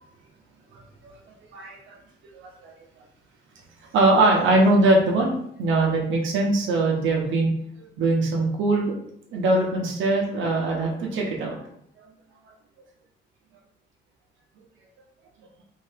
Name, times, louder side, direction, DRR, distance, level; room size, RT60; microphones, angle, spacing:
voice 1, 1.5-2.0 2.3-2.7 3.9-7.5 8.0-8.9 9.3-11.7, right 2 dB, 75° right, -1 dB, 0.8 m, -22 dB
2.7 x 2.7 x 3.3 m, 0.70 s
cardioid pair, 90°, 20 cm